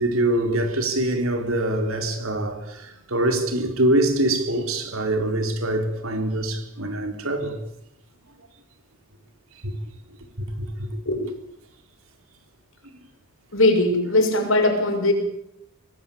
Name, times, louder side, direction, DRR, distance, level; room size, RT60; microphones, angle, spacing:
voice 1, 0.0-7.5 9.6-9.7 10.8-10.9, right 1 dB, 80° right, 4.1 m, -24 dB
voice 2, 13.5-15.1, left 2 dB, 70° left, 6.5 m, -20 dB
24.0 x 19.5 x 8.7 m
head